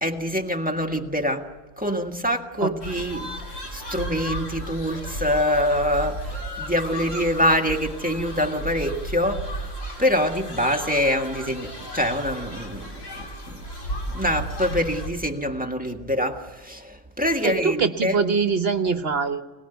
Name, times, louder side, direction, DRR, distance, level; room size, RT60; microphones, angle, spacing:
voice 1, 0.0-1.5 1.8-3.3 3.7-13.6 14.1-18.2, equal, 5° right, 3 dB, 1.7 m, -25 dB
sound 1, 2.8-15.1, right 1 dB, 85° left, 3.9 m, -34 dB
voice 2, 17.4-19.4, right 5 dB, 55° right, 9 dB, 1.2 m, -23 dB
26.5 x 19.5 x 9.2 m, 1.2 s
omnidirectional pair, 1.3 m